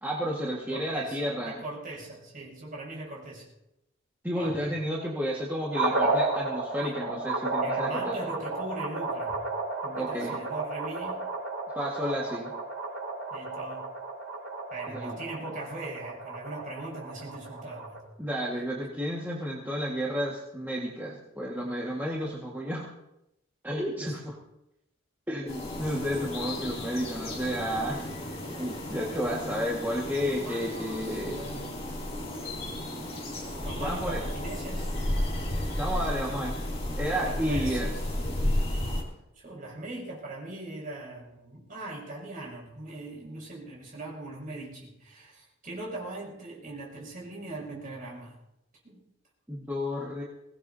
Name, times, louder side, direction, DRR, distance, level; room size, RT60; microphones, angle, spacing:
voice 1, 0.0-1.6 4.2-8.1 10.0-10.4 11.7-12.5 14.9-15.2 18.2-22.9 23.6-24.3 25.3-28.1 28.5-31.4 33.8-34.2 35.7-36.6 37.0-37.9 49.5-50.2, equal, 10° right, -5 dB, 1.7 m, -31 dB
voice 2, 0.7-3.5 4.3-4.6 6.8-7.0 7.6-9.5 9.8-11.3 13.3-13.9 14.7-18.0 24.0-24.1 29.2-29.6 30.2-31.8 33.6-34.9 37.1-38.7 39.3-48.4 48.8-49.0, right 2 dB, 40° right, -4 dB, 6.6 m, -40 dB
sound 1, 5.7-18.0, right 3 dB, 85° right, 4.3 m, -33 dB
sound 2, 25.5-39.0, left 1 dB, 30° left, 2.8 m, -33 dB
23.0 x 18.0 x 2.8 m, 0.86 s
head